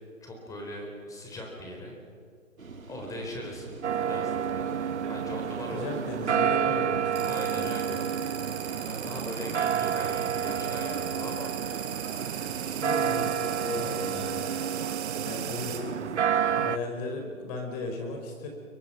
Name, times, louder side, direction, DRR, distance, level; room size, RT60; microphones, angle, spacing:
voice 1, 0.2-2.0 2.9-3.7 4.1-5.9 7.3-8.0 8.8-11.5, left 1 dB, 10° left, 1 dB, 4.0 m, -40 dB
sound 1, 2.6-14.2, right 4 dB, 85° right, 2.1 m, -45 dB
sound 2, 3.8-16.8, right 8 dB, 60° right, 0.8 m, -30 dB
voice 2, 5.7-7.7 12.8-14.5 15.3-16.1 16.5-18.5, left 2 dB, 30° left, 2 dB, 5.2 m, -36 dB
sound 3, 7.1-15.8, right 10 dB, 30° right, 3.2 m, -39 dB
30.0 x 24.0 x 5.7 m, 2.2 s
figure-of-eight pair, 140°, 40 cm